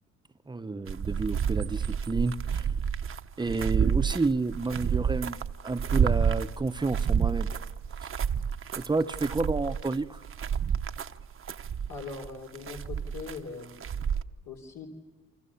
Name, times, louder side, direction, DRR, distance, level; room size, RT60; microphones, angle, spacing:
voice 1, 0.5-2.7 3.4-5.4 5.6-7.5 8.8-10.2, right 3 dB, 15° right, 11 dB, 0.9 m, -30 dB
sound 1, 0.9-14.2, right 7 dB, 45° right, 0.9 m, -29 dB
voice 2, 11.9-13.7 14.5-14.9, left 4 dB, 75° left, 0 dB, 3.5 m, -40 dB
28.5 x 24.5 x 7.2 m, 1.3 s
cardioid pair, 90°, 30 cm